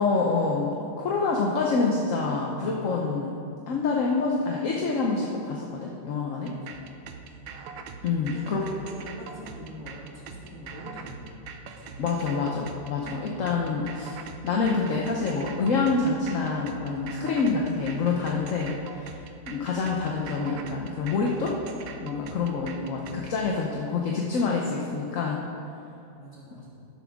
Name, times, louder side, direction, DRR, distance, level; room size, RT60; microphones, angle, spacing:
voice 1, 0.0-3.3 3.7-6.5 8.0-8.6 12.0-19.2 19.5-21.6 22.0-25.4, left 4 dB, 55° left, -1 dB, 1.1 m, -27 dB
sound 1, 6.5-23.3, right 6 dB, 85° right, 1.4 m, -43 dB
voice 2, 7.0-7.6 8.3-11.4 11.8-12.1 26.1-26.9, left 1 dB, 10° left, -9 dB, 2.7 m, -45 dB
12.0 x 11.0 x 3.6 m, 2.6 s
omnidirectional pair, 2.0 m